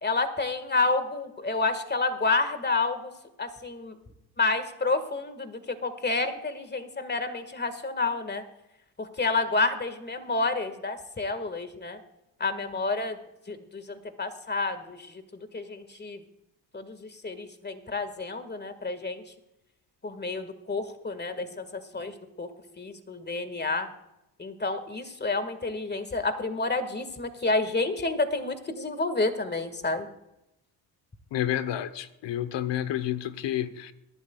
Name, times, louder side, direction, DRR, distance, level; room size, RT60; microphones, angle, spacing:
voice 1, 0.0-3.1 3.4-4.0 4.4-8.4 9.0-12.0 12.4-13.2 13.5-16.2 16.7-19.2 20.0-22.5 22.8-23.9 24.4-30.1, left 3 dB, 20° left, 1.9 m, -29 dB
voice 2, 31.3-33.9, left 11 dB, 60° left, 1.1 m, -30 dB
23.0 x 11.5 x 2.4 m
hypercardioid pair, 60°, 50 cm